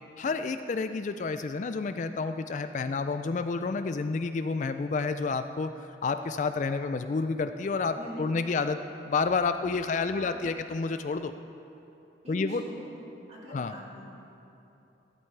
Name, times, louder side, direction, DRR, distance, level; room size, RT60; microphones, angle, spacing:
voice 1, 0.2-5.7 6.0-8.8 9.1-11.3 12.3-12.6 13.5-13.8, left 4 dB, 40° left, 9 dB, 0.3 m, -29 dB
voice 2, 7.9-8.6 9.9-10.3 10.6-10.7 12.2-12.8 13.3-14.0, equal, 35° right, -6 dB, 3.0 m, -43 dB
16.0 x 13.0 x 3.3 m, 2.9 s
head